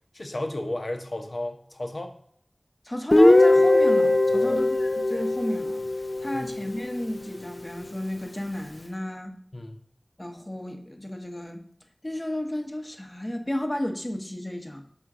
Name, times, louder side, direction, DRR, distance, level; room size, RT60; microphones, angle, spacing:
voice 1, 0.1-2.2 4.3-4.6 6.3-6.5 9.5-9.8, left 1 dB, 65° left, 4 dB, 0.9 m, -33 dB
voice 2, 2.8-5.9 6.2-9.3 10.2-11.6 12.0-14.9, left 1 dB, 25° left, 4 dB, 0.9 m, -33 dB
Guitar, 3.1-6.9, left 2 dB, 45° left, 0.5 m, -20 dB
6.0 x 4.3 x 3.7 m, 0.63 s
wide cardioid pair, 40°, 0 cm